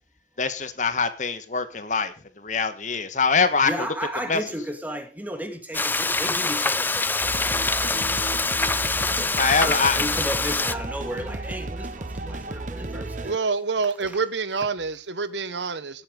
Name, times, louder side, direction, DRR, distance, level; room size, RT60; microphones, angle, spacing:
voice 1, 0.4-3.9 4.3-4.4 9.4-10.0, left 4 dB, 45° left, 1.5 m, -24 dB
voice 2, 3.6-13.3 14.0-14.1, equal, 10° right, 2.3 m, -34 dB
Frying (food), 5.7-10.7, left 3 dB, 10° left, 0.5 m, -24 dB
sound 1, 7.2-13.4, right 2 dB, 45° right, 0.9 m, -34 dB
voice 3, 13.2-16.0, right 4 dB, 90° right, 1.1 m, -27 dB
18.0 x 8.6 x 3.8 m
head